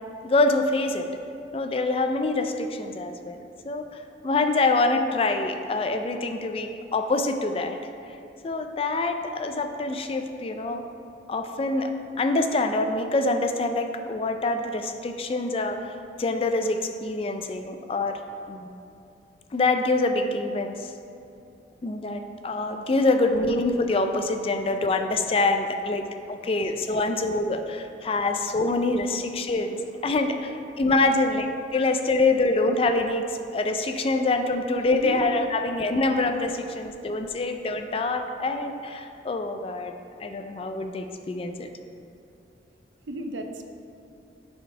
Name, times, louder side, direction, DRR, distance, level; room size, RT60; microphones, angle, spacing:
voice 1, 0.2-1.1 1.5-3.9 4.2-7.8 8.4-10.8 11.3-18.2 18.5-18.7 19.5-20.9 21.8-39.9 40.2-41.7, left 2 dB, 30° left, 6 dB, 0.3 m, -25 dB
voice 2, 34.9-35.2 37.0-37.1 43.1-43.6, equal, 75° right, 5 dB, 0.6 m, -34 dB
6.9 x 4.0 x 4.9 m, 2.7 s
head